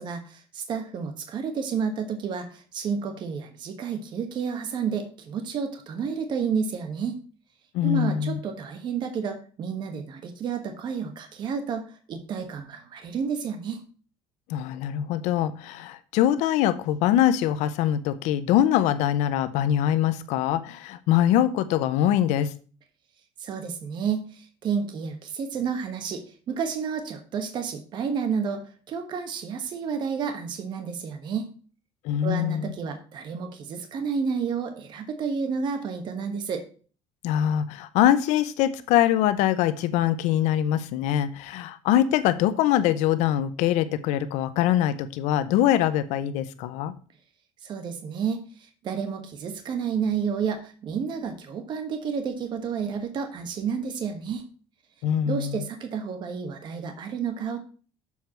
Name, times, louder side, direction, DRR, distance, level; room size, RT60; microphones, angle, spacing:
voice 1, 0.0-7.2 7.8-13.8 23.4-28.6 28.9-31.5 32.2-36.6 47.6-48.5 48.8-54.4 55.3-57.6, right 6 dB, 40° right, 6 dB, 1.2 m, -30 dB
voice 2, 7.7-8.4 14.5-22.5 32.0-32.7 37.2-46.9 55.0-55.6, left 11 dB, 80° left, 12 dB, 0.7 m, -23 dB
7.2 x 4.6 x 5.7 m, 0.39 s
cardioid pair, 155°, 12 cm